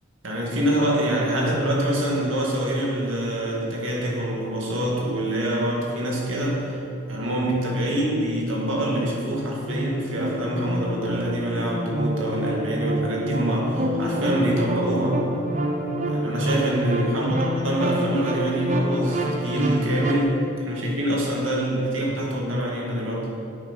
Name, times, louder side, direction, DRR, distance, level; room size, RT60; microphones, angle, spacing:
voice 1, 0.2-6.8 7.1-15.2 16.1-17.4 17.6-20.4 20.7-23.3, right 1 dB, 85° right, -3 dB, 2.1 m, -25 dB
sound 1, 9.0-20.2, right 1 dB, 35° right, 0.8 m, -27 dB
9.0 x 6.6 x 5.5 m, 2.6 s
head